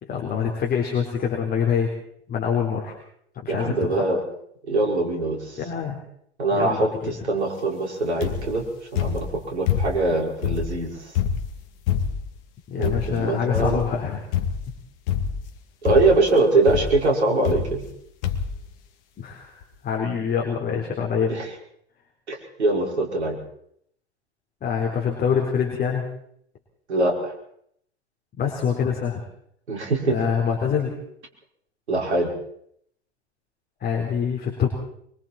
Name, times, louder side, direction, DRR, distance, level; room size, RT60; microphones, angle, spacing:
voice 1, 0.0-1.9 2.3-2.9 3.4-4.0 5.6-6.0 6.5-7.1 12.7-14.2 19.2-19.5 19.8-21.3 24.6-26.0 28.4-29.2 30.1-30.9 33.8-34.7, left 7 dB, 25° left, 0 dB, 4.2 m, -25 dB
voice 2, 3.5-4.2 4.7-5.6 6.4-8.6 8.9-11.1 12.8-13.8 15.8-17.8 21.3-21.5 22.3-23.4 26.9-27.3 29.7-30.2 31.9-32.3, right 2 dB, 75° right, 1 dB, 5.4 m, -23 dB
sound 1, 8.2-8.6 9.0-10.1 10.4-12.4 12.8-13.2 13.5-14.0 14.3-14.7 15.1-15.6 15.8-16.3 16.7-17.0 17.4-18.0 18.2-18.6 19.3-19.4 19.6-19.7, left 8 dB, 55° left, 2.6 m, -26 dB
24.5 x 24.0 x 4.5 m, 0.70 s
figure-of-eight pair, 95°, 33 cm